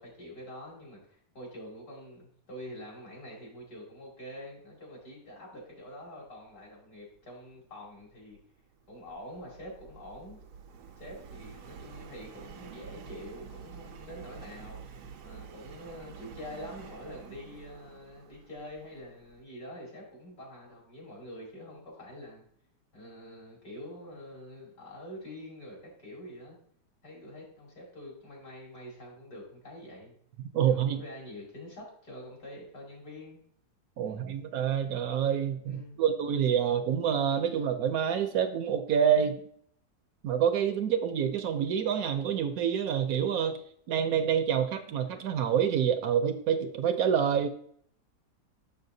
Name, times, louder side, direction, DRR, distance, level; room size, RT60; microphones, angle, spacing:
voice 1, 0.0-8.4 8.9-10.4 11.0-14.8 15.2-22.4 22.9-26.6 27.0-30.1 30.7-33.4 34.1-34.4 35.6-36.0, left 1 dB, 70° left, -3 dB, 3.1 m, -46 dB
Subway metro underground, 8.1-19.4, right 6 dB, 90° right, 1.3 m, -48 dB
voice 2, 30.4-31.0 34.0-39.3 40.2-43.6 43.9-47.5, right 8 dB, 70° right, 8 dB, 1.0 m, -27 dB
7.0 x 6.6 x 2.6 m, 0.63 s
omnidirectional pair, 1.7 m